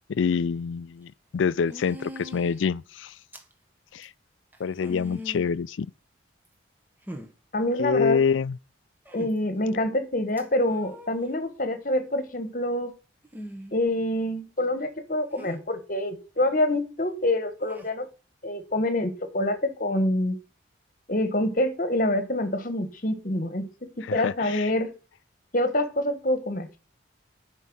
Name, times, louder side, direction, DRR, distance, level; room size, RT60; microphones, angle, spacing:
voice 1, 0.1-3.1 3.9-4.1 4.6-5.9 7.8-8.6 24.1-24.7, left 6 dB, 75° left, 0.4 m, -26 dB
sound 1, 0.5-0.6 1.7-2.6 3.3-3.5 4.0-4.1 4.5-5.5 6.5-6.6 7.1-7.3 9.1-9.3 10.4-11.2 13.2-13.8 15.4-15.6 17.6-17.9, left 1 dB, 10° right, 1.1 m, -41 dB
voice 2, 7.5-8.2 9.1-12.9 13.7-18.1 18.4-20.4 21.1-24.9 25.5-26.7, left 1 dB, 45° left, 1.3 m, -26 dB
9.2 x 5.5 x 7.8 m
head